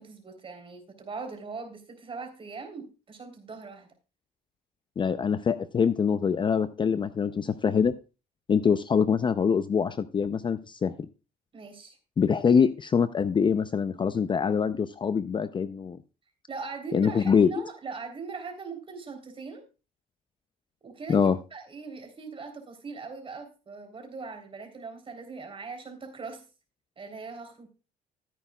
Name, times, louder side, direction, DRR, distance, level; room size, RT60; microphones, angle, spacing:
voice 1, 0.0-3.9 11.5-12.0 16.5-19.6 20.8-21.2 21.5-26.4 27.0-27.7, right 4 dB, 30° right, 5 dB, 3.4 m, -40 dB
voice 2, 5.0-7.9 8.5-10.9 12.2-16.0 16.9-17.6 21.1-21.4, left 6 dB, 30° left, 13 dB, 0.5 m, -24 dB
14.5 x 9.1 x 2.3 m, 0.32 s
cardioid pair, 110°, 17 cm